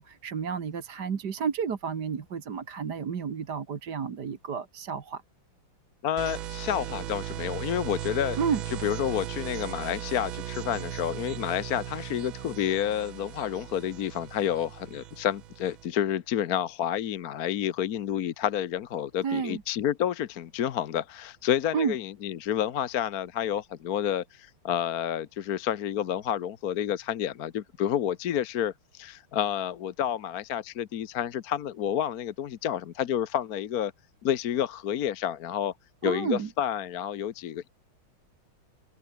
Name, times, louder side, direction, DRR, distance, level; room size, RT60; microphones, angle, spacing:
voice 1, 0.0-5.2 8.4-8.6 19.2-19.6 21.7-21.9 36.0-36.5, right 6 dB, 55° right, 2.2 m, -31 dB
voice 2, 6.0-8.4 8.8-33.9 34.2-35.7 36.0-37.7, left 10 dB, 55° left, 1.1 m, -29 dB
sound 1, 6.2-15.9, right 12 dB, 75° right, 1.8 m, -37 dB
omnidirectional pair, 2.3 m